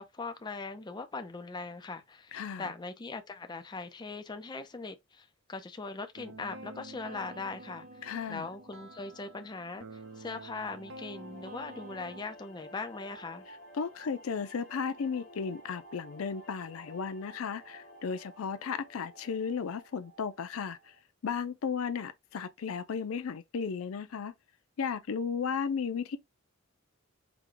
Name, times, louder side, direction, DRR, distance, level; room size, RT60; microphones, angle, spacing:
voice 1, 0.0-7.9 8.3-13.4, left 3 dB, 20° left, 0.4 m, -40 dB
voice 2, 2.3-2.7 8.0-8.5 13.8-20.9 21.2-24.3 24.8-26.2, left 6 dB, 75° left, 0.5 m, -35 dB
sound 1, 6.2-12.2, right 2 dB, 60° right, 0.5 m, -48 dB
sound 2, 9.9-21.0, equal, 40° left, 1.1 m, -54 dB
4.7 x 2.2 x 3.7 m
head